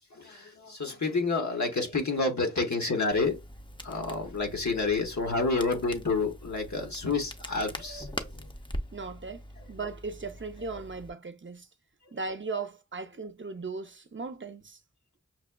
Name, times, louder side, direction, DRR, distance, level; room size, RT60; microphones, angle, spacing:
voice 1, 0.1-3.4 3.8-8.3, left 3 dB, 65° left, 1.1 m, -29 dB
Crackle, 3.1-11.1, equal, 15° left, 0.6 m, -43 dB
voice 2, 8.9-11.7 12.1-14.8, right 4 dB, 40° right, 0.6 m, -37 dB
5.9 x 2.3 x 2.2 m
wide cardioid pair, 40°, 30 cm